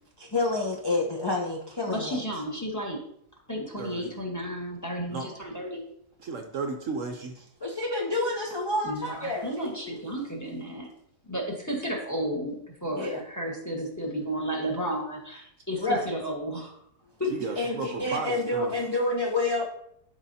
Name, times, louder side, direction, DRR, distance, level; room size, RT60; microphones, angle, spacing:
voice 1, 0.2-2.2 7.6-10.0 12.9-13.2 15.8-16.0 17.6-19.7, left 2 dB, 35° left, -1 dB, 0.4 m, -28 dB
voice 2, 1.9-3.0 3.5-5.8 8.8-10.9 11.2-16.8 17.2-17.3, equal, 10° left, -1 dB, 1.4 m, -33 dB
voice 3, 3.8-4.2 5.1-5.3 6.2-7.3 17.3-18.7, right 4 dB, 60° right, 5 dB, 1.0 m, -34 dB
12.0 x 4.8 x 2.7 m, 0.72 s
omnidirectional pair, 1.7 m